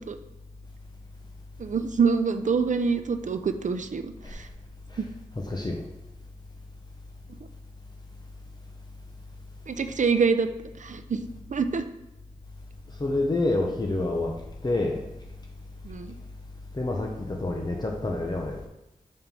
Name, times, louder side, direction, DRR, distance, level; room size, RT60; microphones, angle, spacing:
voice 1, 1.6-4.4 9.7-10.5 10.8-11.9 15.8-16.1, right 5 dB, 65° right, 9 dB, 0.5 m, -26 dB
voice 2, 5.4-5.8 13.0-14.3 14.6-15.0 16.7-18.6, left 2 dB, 30° left, 0 dB, 0.8 m, -27 dB
5.4 x 4.4 x 5.4 m, 0.92 s
wide cardioid pair, 85°, 14 cm